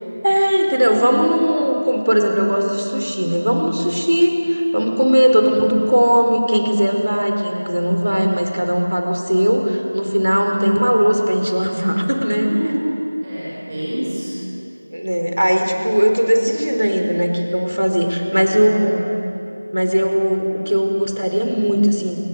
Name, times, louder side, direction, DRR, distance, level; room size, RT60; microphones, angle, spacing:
voice 1, 0.2-12.5 14.9-18.9 19.7-22.2, equal, 80° right, 4 dB, 4.5 m, -18 dB
voice 2, 12.5-14.4 18.4-18.9, equal, 10° right, -11 dB, 7.2 m, -27 dB
27.0 x 21.0 x 8.1 m, 2.7 s
figure-of-eight pair, 175°, 0 cm